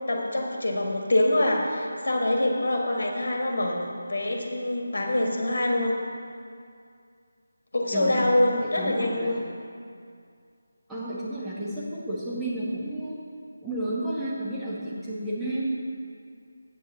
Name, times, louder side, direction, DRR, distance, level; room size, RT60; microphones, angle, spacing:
voice 1, 0.1-3.8 4.1-6.0 7.7-9.4, left 1 dB, 55° left, 1 dB, 1.5 m, -25 dB
voice 2, 7.9-8.3 8.6-9.4 10.9-13.2 13.6-15.7, right 1 dB, 5° right, -10 dB, 1.2 m, -32 dB
8.2 x 6.7 x 5.6 m, 2.3 s
figure-of-eight pair, 160°, 0 cm